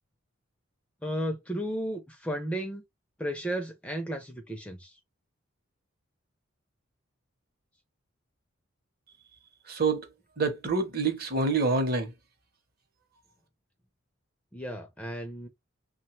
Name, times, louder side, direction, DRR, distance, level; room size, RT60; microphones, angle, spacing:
voice 1, 1.0-2.8 3.2-5.0 14.5-15.5, equal, 5° left, 0.4 m, -34 dB
voice 2, 9.7-10.1 10.4-12.1, right 3 dB, 45° right, 0.7 m, -26 dB
3.0 x 2.2 x 3.0 m
head